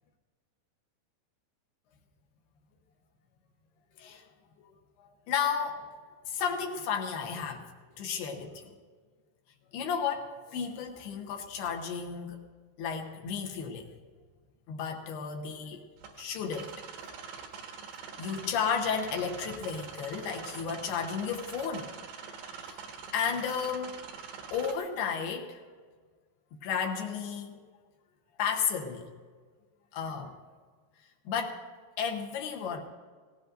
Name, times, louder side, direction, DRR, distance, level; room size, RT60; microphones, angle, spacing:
voice 1, 5.3-5.9 6.3-7.6 8.0-8.7 9.7-12.4 12.8-13.9 14.7-15.8 16.2-16.7 18.2-21.9 22.6-22.8 23.1-24.0 24.5-25.6 26.6-27.6 28.4-29.1 29.9-30.3 31.3-31.6 32.0-32.8, left 6 dB, 70° left, 2 dB, 3.0 m, -33 dB
sound 1, 16.0-24.7, right 6 dB, 85° right, 3.9 m, -44 dB
18.0 x 18.0 x 2.6 m, 1.5 s
omnidirectional pair, 5.0 m